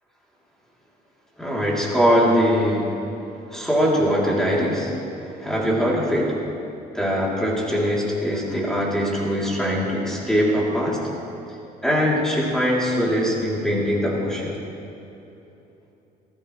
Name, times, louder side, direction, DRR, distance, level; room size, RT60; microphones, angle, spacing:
voice 1, 1.4-3.0 3.5-6.4 6.9-11.1 11.8-14.6, equal, 5° left, -5 dB, 3.3 m, -22 dB
18.5 x 15.0 x 3.3 m, 2.9 s
cardioid pair, 110°, 17 cm